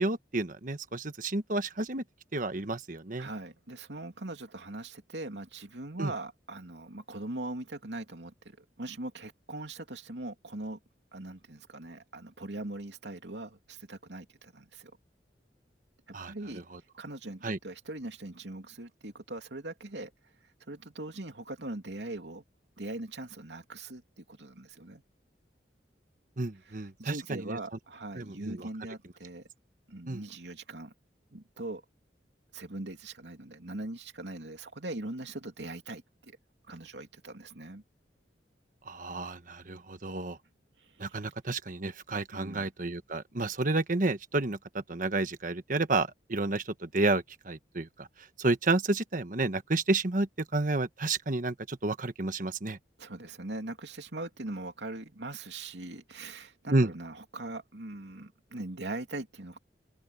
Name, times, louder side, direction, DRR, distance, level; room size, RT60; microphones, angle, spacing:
voice 1, 0.0-2.0 2.3-3.3 6.0-6.1 16.1-16.8 17.4-17.6 26.4-27.6 28.2-28.7 30.1-30.2 38.8-40.4 41.0-52.8 56.7-56.9, right 2 dB, 50° right, 1.3 m, -31 dB
voice 2, 3.2-10.8 11.1-14.9 16.2-16.6 17.0-20.1 20.7-22.4 22.8-25.0 26.7-29.5 29.9-30.9 31.3-31.8 32.5-36.4 36.7-37.8 40.8-41.2 42.3-42.7 53.0-59.6, right 2 dB, 80° right, 2.9 m, -41 dB
open air
head